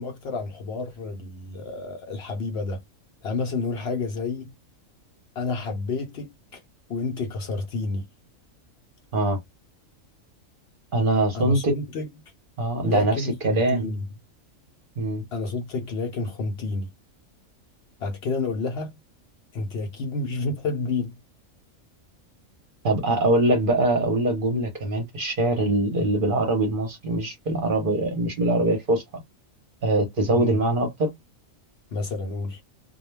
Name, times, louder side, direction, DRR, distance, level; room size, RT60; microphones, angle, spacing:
voice 1, 0.0-2.8 3.2-4.5 5.4-6.6 6.9-8.0 11.3-12.1 12.8-14.0 15.3-16.9 18.0-18.9 19.5-21.2 30.3-30.6 31.9-32.6, left 3 dB, 65° left, 0.7 m, -30 dB
voice 2, 10.9-11.7 12.6-13.9 15.0-15.2 22.8-29.0 29.8-31.1, right 2 dB, 50° right, 0.7 m, -23 dB
2.2 x 2.1 x 3.1 m
omnidirectional pair, 1.4 m